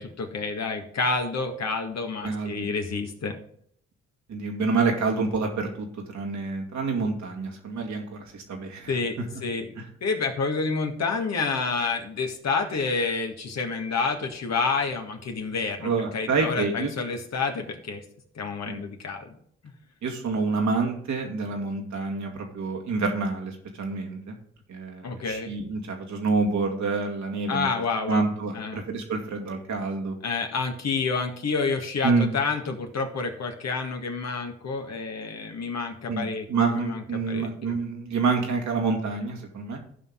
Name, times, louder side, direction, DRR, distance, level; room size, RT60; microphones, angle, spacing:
voice 1, 0.0-3.4 8.9-9.7 10.0-18.0 18.3-19.3 25.0-25.5 27.5-28.3 28.5-28.8 30.2-37.8, left 4 dB, 50° left, 3 dB, 1.8 m, -29 dB
voice 2, 2.2-2.7 4.3-9.0 15.8-16.9 18.7-18.8 20.0-24.4 24.7-27.7 28.1-30.2 32.0-32.3 36.1-39.8, right 4 dB, 60° right, 2 dB, 2.2 m, -27 dB
15.0 x 5.5 x 3.8 m, 0.66 s
hypercardioid pair, 40°, 33 cm